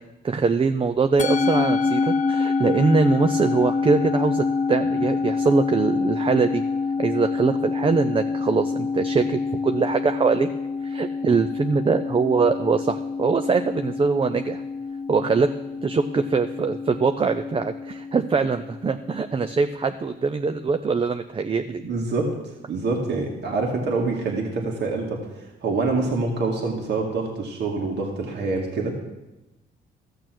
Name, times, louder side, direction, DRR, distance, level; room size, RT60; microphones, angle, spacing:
voice 1, 0.2-6.6 7.0-10.5 10.8-14.6 15.1-15.5 15.8-21.8, right 4 dB, 25° right, 8 dB, 0.5 m, -22 dB
Musical instrument, 1.2-19.7, left 4 dB, 40° left, 0.8 m, -27 dB
voice 2, 21.7-22.3 22.7-29.0, right 3 dB, 60° right, -1 dB, 2.0 m, -26 dB
14.0 x 6.7 x 6.1 m, 1.0 s
cardioid pair, 90°, 20 cm